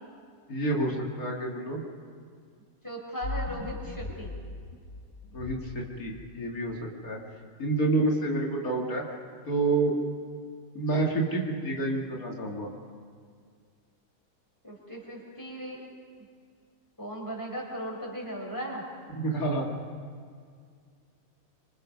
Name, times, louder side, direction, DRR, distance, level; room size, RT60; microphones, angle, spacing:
voice 1, 0.5-1.8 5.3-6.8 7.0-7.2 7.6-9.0 9.5-9.9 10.7-12.7 19.1-19.7, right 2 dB, 85° left, -1 dB, 3.0 m, -28 dB
voice 2, 2.8-4.3 14.6-15.9 17.0-18.8, equal, 15° left, -2 dB, 5.2 m, -37 dB
sound 1, 3.2-6.7, left 2 dB, 65° left, 2.0 m, -39 dB
26.0 x 26.0 x 5.4 m, 2.1 s
omnidirectional pair, 1.5 m